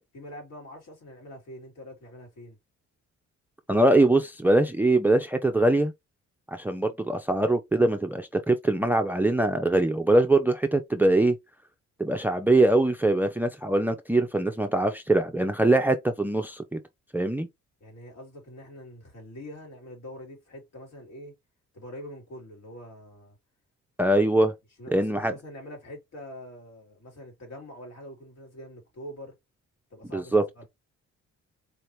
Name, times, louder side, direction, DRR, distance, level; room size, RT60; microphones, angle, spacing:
voice 1, 0.1-2.6 17.8-21.3 21.7-23.4 24.8-29.4 29.9-30.7, left 1 dB, 60° left, 3.3 m, -44 dB
voice 2, 3.7-5.9 6.5-11.3 12.0-16.8 17.1-17.5 24.0-24.5 24.9-25.3 30.1-30.7, right 2 dB, 5° right, 0.5 m, -23 dB
4.3 x 2.8 x 3.2 m
cardioid pair, 90°, 30 cm